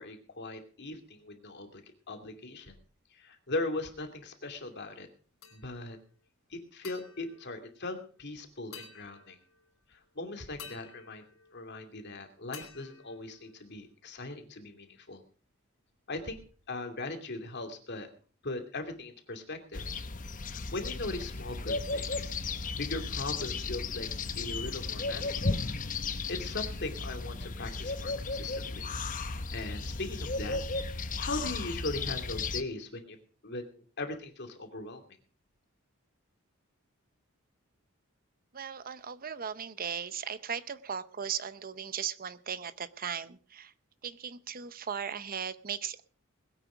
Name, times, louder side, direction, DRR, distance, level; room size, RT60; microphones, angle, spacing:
voice 1, 0.0-1.8 2.1-2.8 3.2-5.1 5.5-6.0 6.5-9.4 9.9-11.2 11.5-15.2 16.1-16.4 16.7-18.1 18.4-19.8 20.4-22.3 22.8-24.1 24.3-25.6 26.3-28.9 29.5-30.6 30.9-33.2 33.4-35.0, left 2 dB, 55° left, 5 dB, 2.7 m, -39 dB
sound 1, 5.4-6.0 6.8-8.3 8.7-9.7 10.6-12.1 12.5-13.9, left 6 dB, 85° left, 4.0 m, -52 dB
sound 2, 19.7-32.6, left 3 dB, 40° left, 0.9 m, -35 dB
voice 2, 38.5-43.7 44.0-46.0, right 7 dB, 45° right, 14 dB, 0.8 m, -37 dB
21.0 x 9.1 x 5.1 m, 0.41 s
head